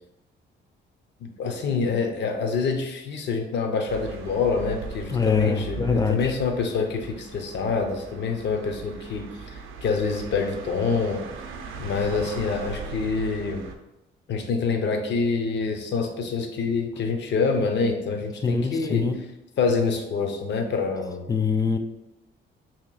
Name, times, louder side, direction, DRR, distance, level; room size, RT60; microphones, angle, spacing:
voice 1, 1.2-11.2 11.8-13.6 14.3-19.1 19.6-21.3, left 4 dB, 60° left, 4 dB, 0.6 m, -26 dB
sound 1, 3.9-13.7, right 5 dB, 90° right, 0.5 m, -39 dB
voice 2, 5.1-6.3 18.4-19.2 21.3-21.8, left 5 dB, 20° left, 6 dB, 0.4 m, -23 dB
2.9 x 2.7 x 3.9 m, 0.93 s
cardioid pair, 90°, 20 cm